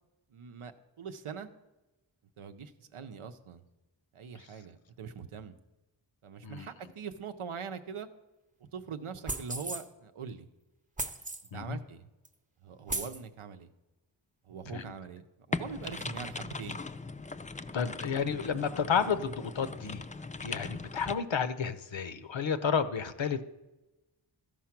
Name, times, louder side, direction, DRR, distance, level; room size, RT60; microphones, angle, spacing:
voice 1, 0.3-1.5 2.4-3.6 4.1-5.6 6.2-8.1 8.6-10.5 11.5-12.1 12.6-13.7 14.5-16.8, right 6 dB, 90° right, 9 dB, 0.7 m, -42 dB
sound 1, 9.3-9.8 11.0-11.5 12.2-12.3 12.9-13.2, right 2 dB, 15° right, 0.7 m, -36 dB
sound 2, 15.5-21.1, left 3 dB, 15° left, 0.4 m, -39 dB
voice 2, 17.7-20.0 20.4-23.4, left 6 dB, 65° left, 11 dB, 0.8 m, -31 dB
13.5 x 4.8 x 5.9 m, 1.0 s
wide cardioid pair, 50°, 49 cm